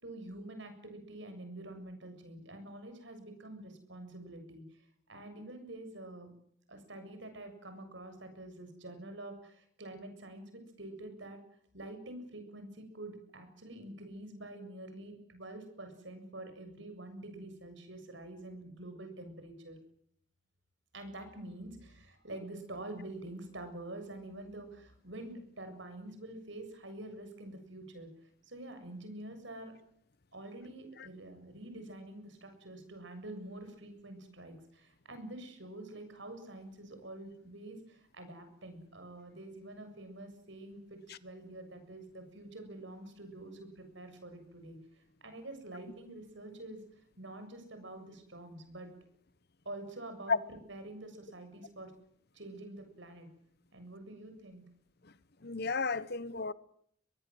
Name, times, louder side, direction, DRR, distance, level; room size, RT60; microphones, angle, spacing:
voice 1, 0.0-6.3 6.7-11.4 11.7-19.8 20.9-28.1 28.4-29.8 30.3-44.8 45.2-46.8 47.2-48.9 49.7-50.4 50.7-51.9 52.3-53.3 53.7-54.6, right 1 dB, 65° right, 7.4 m, -47 dB
voice 2, 55.4-56.5, left 4 dB, 55° left, 1.0 m, -32 dB
23.0 x 20.5 x 7.9 m
head